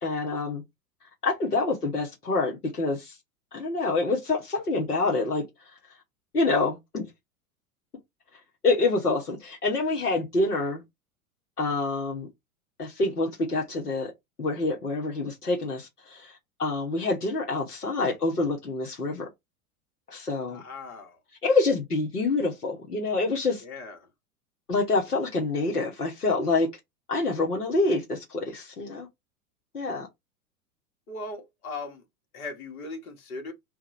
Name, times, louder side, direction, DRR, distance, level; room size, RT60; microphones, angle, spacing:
voice 1, 0.0-0.6 1.2-3.1 3.5-5.4 6.3-7.1 8.6-10.8 11.6-12.3 12.8-14.1 14.4-19.3 20.1-20.6 21.4-23.6 24.7-26.7 27.1-29.1 29.7-30.1, left 3 dB, 85° left, 1.5 m, -26 dB
voice 2, 20.5-21.2 23.6-24.0 31.1-32.0 32.3-33.5, left 3 dB, 65° left, 1.7 m, -38 dB
3.6 x 2.7 x 4.2 m
figure-of-eight pair, 85°, 45 cm